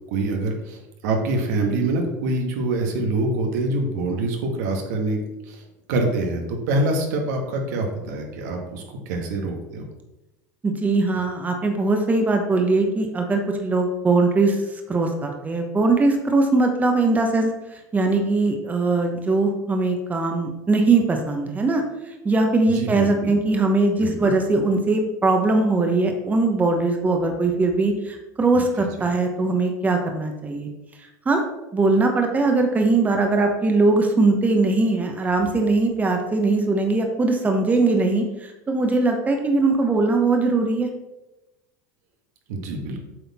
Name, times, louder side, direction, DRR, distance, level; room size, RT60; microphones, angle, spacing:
voice 1, 0.1-5.2 5.5-5.6 5.9-9.9 22.7-23.3 24.0-24.3 28.5-28.9 42.5-43.0, right 2 dB, 75° right, 3 dB, 1.4 m, -25 dB
voice 2, 10.6-14.6 14.9-17.5 17.9-21.8 22.2-30.7 31.3-31.4 31.7-40.9, right 3 dB, 15° right, 3 dB, 1.0 m, -21 dB
7.8 x 4.2 x 4.2 m, 0.99 s
supercardioid pair, 110°, 9 cm